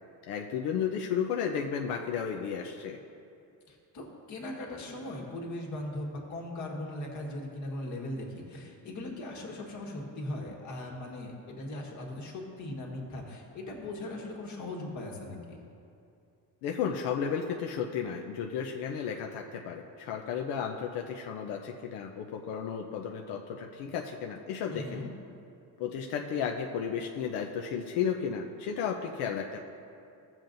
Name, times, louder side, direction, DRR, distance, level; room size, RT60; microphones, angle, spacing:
voice 1, 0.3-3.0 16.6-25.1 25.8-29.6, left 7 dB, 85° left, 2 dB, 0.7 m, -33 dB
voice 2, 3.7-15.6 24.7-25.1, left 1 dB, 45° left, 0 dB, 1.5 m, -39 dB
15.5 x 7.3 x 2.6 m, 2.5 s
cardioid pair, 155°, 39 cm